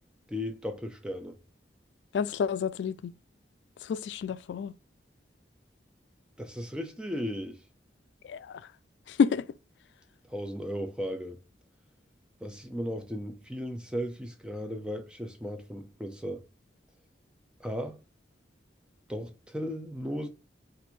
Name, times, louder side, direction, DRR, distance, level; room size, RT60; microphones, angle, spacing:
voice 1, 0.3-1.4 6.4-7.6 10.3-11.4 12.4-16.4 17.6-18.0 19.1-20.3, equal, 5° right, 0.5 m, -36 dB
voice 2, 2.1-3.1 3.8-4.7 8.2-8.6 9.1-9.4, left 6 dB, 85° left, 0.3 m, -29 dB
4.1 x 2.6 x 4.4 m
head